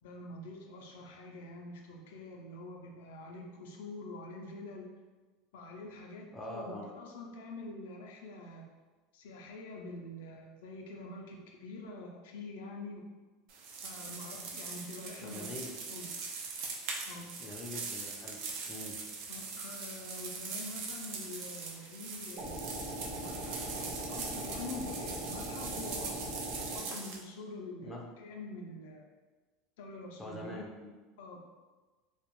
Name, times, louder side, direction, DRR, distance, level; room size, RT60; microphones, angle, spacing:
voice 1, 0.0-5.0 5.5-8.6 9.1-13.0 13.8-15.5 15.9-16.1 17.1-17.3 19.3-26.3 26.7-29.1 29.8-30.7 31.2-31.4, left 2 dB, 85° left, 1 dB, 0.4 m, -46 dB
voice 2, 6.3-6.9 15.2-15.8 17.4-18.4 18.7-19.0 27.8-28.0 30.2-30.9, left 1 dB, 10° left, -2 dB, 0.4 m, -43 dB
sound 1, 13.5-27.2, right 4 dB, 60° right, 0.4 m, -41 dB
sound 2, 22.4-26.8, right 1 dB, 40° right, 0.8 m, -40 dB
2.3 x 2.0 x 3.0 m, 1.3 s
supercardioid pair, 135°, 0 cm